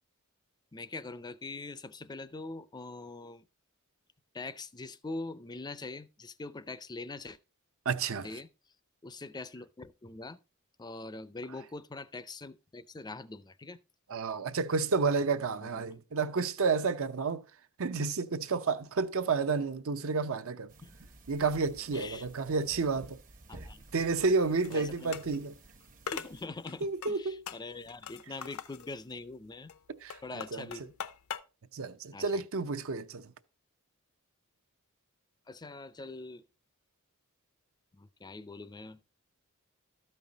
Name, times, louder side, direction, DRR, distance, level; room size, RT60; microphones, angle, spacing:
voice 1, 0.7-3.5 4.3-7.4 8.2-8.5 9.0-10.4 10.8-13.8 15.6-16.0 20.8-20.9 21.9-22.3 23.5-23.9 24.7-25.2 26.1-29.7 30.2-30.9 32.1-32.4 35.5-36.4 38.0-39.0, left 3 dB, 20° left, 0.5 m, -43 dB
voice 2, 7.9-8.3 14.1-17.4 17.8-20.7 21.3-23.2 23.9-25.6 26.8-27.4 30.0-30.9 31.7-33.2, right 4 dB, 65° right, 0.7 m, -30 dB
sound 1, 20.7-26.5, right 2 dB, 40° right, 0.8 m, -53 dB
Various Metal Impacts, 23.9-31.4, left 7 dB, 70° left, 0.6 m, -44 dB
13.0 x 5.5 x 4.0 m
head